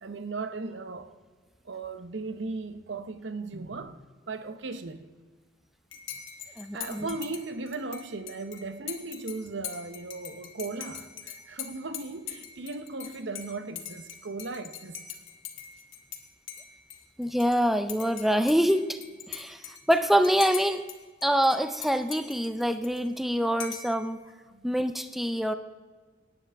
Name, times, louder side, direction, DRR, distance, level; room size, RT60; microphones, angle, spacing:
voice 1, 0.0-1.2 1.6-5.1 6.5-15.1 19.5-19.6 24.5-24.7, right 3 dB, 70° right, 0.8 m, -37 dB
Dishes pots and pans / Cutlery silverware / Chink clink, 5.9-16.2 16.5-17.6 17.9-21.0 21.2-23.2 23.6-24.0, left 9 dB, 85° left, 1.5 m, -42 dB
voice 2, 6.6-7.1 17.2-19.0 19.3-20.8 21.2-24.2 24.6-25.5, equal, ahead, 0.4 m, -25 dB
17.0 x 9.8 x 3.4 m
head